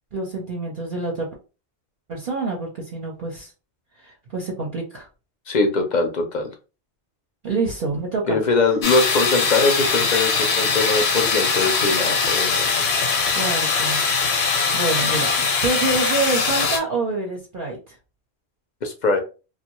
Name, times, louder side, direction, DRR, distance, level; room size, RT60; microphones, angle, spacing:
voice 1, 0.1-1.3 2.1-3.5 4.0-5.1 7.4-8.4 13.3-14.0 14.3-15.3 15.6-18.0, right 3 dB, 55° right, -1 dB, 0.7 m, -27 dB
voice 2, 5.5-6.5 8.3-12.9 18.8-19.2, left 3 dB, 55° left, 5 dB, 0.6 m, -22 dB
sound 1, 8.8-16.8, left 5 dB, 70° left, 0.9 m, -21 dB
2.6 x 2.2 x 2.9 m, 0.32 s
omnidirectional pair, 1.1 m